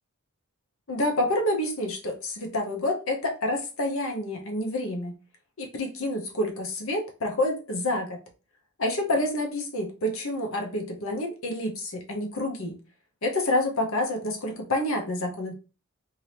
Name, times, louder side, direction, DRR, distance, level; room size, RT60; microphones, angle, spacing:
voice 1, 0.9-5.2 5.6-8.2 8.8-12.8 13.2-15.5, left 1 dB, 70° left, 2 dB, 0.9 m, -28 dB
2.8 x 2.8 x 3.2 m, 0.33 s
head